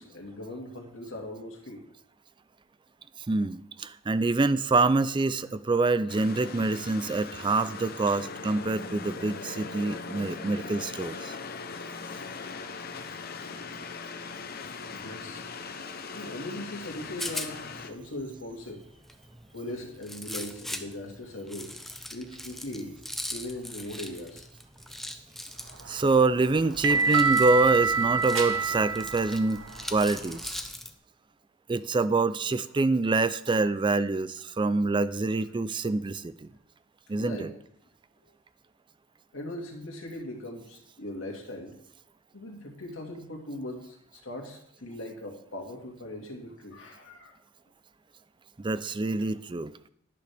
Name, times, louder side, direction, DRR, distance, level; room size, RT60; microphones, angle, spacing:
voice 1, 0.0-1.8 8.0-8.2 14.9-15.5 16.1-18.8 19.5-21.8 22.1-22.9 23.3-24.5 30.5-30.6 37.1-37.5 38.2-38.3 39.3-41.7 42.3-47.3, left 1 dB, 85° left, 0 dB, 2.0 m, -40 dB
voice 2, 3.3-11.3 25.9-29.6 29.9-30.6 31.7-36.5 37.1-37.5 48.6-49.7, right 3 dB, 25° right, 15 dB, 0.4 m, -26 dB
sound 1, 6.1-17.9, left 4 dB, 50° left, 0.8 m, -40 dB
Rattle, 16.8-30.9, left 1 dB, ahead, 0.7 m, -41 dB
sound 2, 25.7-30.6, right 5 dB, 80° right, 1.2 m, -27 dB
11.5 x 10.5 x 3.5 m, 0.68 s
head